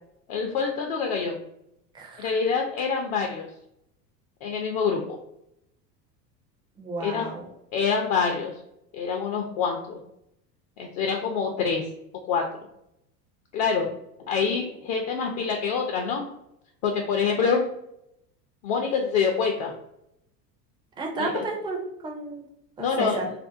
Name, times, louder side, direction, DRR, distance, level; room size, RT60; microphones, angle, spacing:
voice 1, 0.3-1.3 2.2-3.5 4.4-5.2 7.0-7.3 7.7-8.5 8.9-10.0 10.8-11.9 12.3-12.4 13.5-13.9 14.3-16.2 16.8-17.6 18.6-19.7 21.2-21.4 22.8-23.2, left 5 dB, 50° left, 1 dB, 0.5 m, -26 dB
voice 2, 1.9-2.3 6.8-7.5 21.0-22.4 22.8-23.3, right 3 dB, 10° right, 0 dB, 0.3 m, -32 dB
2.6 x 2.1 x 2.4 m, 0.78 s
hypercardioid pair, 90°, 50 cm